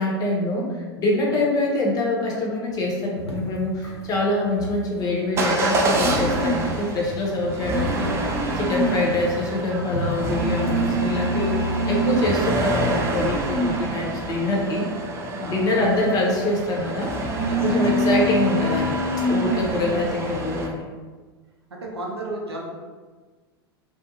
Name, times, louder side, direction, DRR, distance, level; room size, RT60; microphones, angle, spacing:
voice 1, 0.0-8.1 8.5-14.9 15.3-19.0 19.2-20.8, left 2 dB, 30° left, -2 dB, 0.6 m, -25 dB
sound 1, 3.2-8.8 9.1-12.0, left 1 dB, 90° left, 0.5 m, -36 dB
Motor vehicle (road) / Engine starting / Accelerating revving vroom, 5.4-20.7, right 1 dB, 20° right, 0.4 m, -25 dB
voice 2, 15.4-15.8 17.5-17.9 18.2-18.3 21.7-22.6, right 1 dB, 75° right, -1 dB, 0.6 m, -33 dB
2.5 x 2.4 x 2.7 m, 1.4 s
figure-of-eight pair, 85°, 13 cm